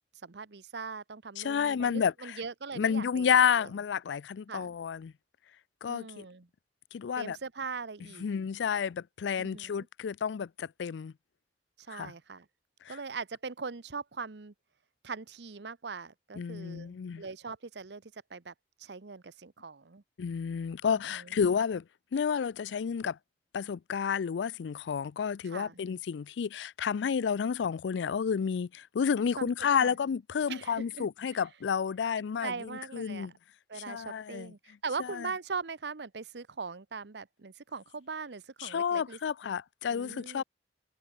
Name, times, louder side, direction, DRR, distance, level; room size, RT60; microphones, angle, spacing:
voice 1, 0.2-3.7 4.5-4.7 5.8-6.5 7.2-8.3 9.4-9.9 11.9-12.5 12.9-14.5 15.0-18.5 18.8-20.0 21.1-21.4 25.4-25.8 29.3-29.5 29.8-30.0 30.5-31.1 32.4-33.3 33.7-39.2 39.9-40.4, right 4 dB, 70° right, 0.9 m, -41 dB
voice 2, 1.4-2.4 2.8-5.1 5.8-6.3 6.9-7.4 8.2-11.1 11.9-12.1 12.9-13.0 16.4-17.2 20.2-21.8 22.1-23.2 23.5-33.3 33.8-34.5 35.1-35.3 38.6-40.4, left 7 dB, 85° left, 0.4 m, -30 dB
head